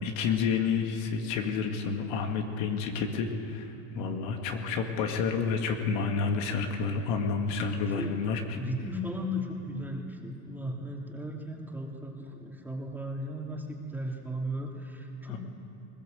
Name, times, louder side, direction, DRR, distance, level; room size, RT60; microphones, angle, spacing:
voice 1, 0.0-8.6 15.3-15.4, left 5 dB, 65° left, 3 dB, 2.3 m, -30 dB
voice 2, 3.9-4.3 7.7-8.2 8.5-15.4, equal, 5° right, -1 dB, 3.0 m, -36 dB
20.5 x 19.5 x 7.9 m, 2.8 s
supercardioid pair, 110°, 49 cm